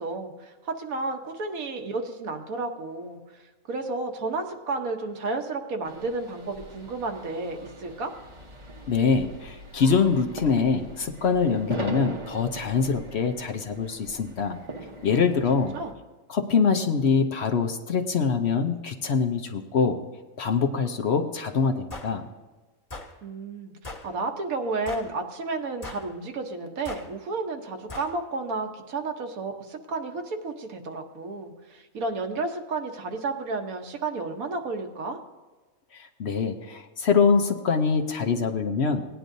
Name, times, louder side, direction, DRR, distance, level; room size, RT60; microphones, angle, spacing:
voice 1, 0.0-3.2 3.7-8.1 15.7-15.9 23.2-35.2, right 3 dB, 80° right, 4 dB, 1.5 m, -32 dB
sound 1, 5.8-15.9, right 1 dB, 25° right, 0.8 m, -41 dB
voice 2, 8.9-14.6 15.0-15.7 16.3-20.0 20.4-22.3 35.9-39.0, left 5 dB, 55° left, 5 dB, 0.9 m, -24 dB
sound 2, 21.9-22.1 22.9-23.1 23.8-24.1 24.9-25.1 25.8-26.1 26.9-27.1 27.9-28.1, left 2 dB, 30° left, 1.3 m, -39 dB
18.5 x 10.0 x 2.6 m, 1.3 s
omnidirectional pair, 1.5 m